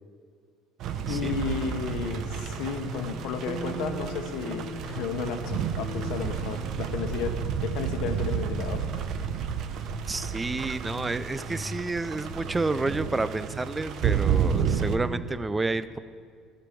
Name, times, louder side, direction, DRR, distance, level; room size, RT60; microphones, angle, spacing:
Big rain and thunder under a window, 0.8-15.0, right 8 dB, 60° right, 0.7 m, -31 dB
voice 1, 1.1-9.1, left 6 dB, 70° left, 7 dB, 1.0 m, -33 dB
sound 1, 2.8-7.5 7.8-10.2 10.5-15.2, right 1 dB, 40° right, 1.5 m, -40 dB
voice 2, 10.1-16.0, right 3 dB, 15° right, 14 dB, 0.5 m, -30 dB
13.0 x 5.2 x 8.4 m, 2.1 s
supercardioid pair, 95°, 0 cm